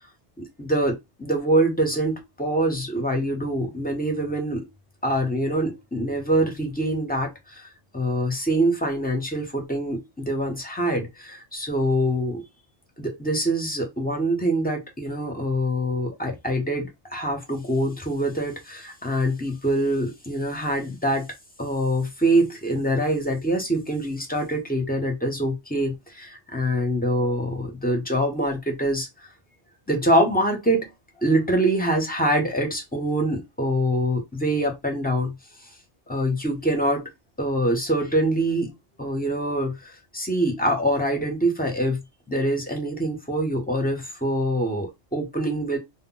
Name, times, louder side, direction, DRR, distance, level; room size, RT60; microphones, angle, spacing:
voice 1, 0.4-4.7 5.0-7.7 7.9-12.4 13.0-21.3 21.6-29.1 29.9-30.9 31.2-35.3 36.1-37.0 37.4-38.7 39.0-42.0 42.3-45.8, right 1 dB, 10° left, 0.4 m, -24 dB
2.1 x 2.1 x 3.7 m
omnidirectional pair, 1.2 m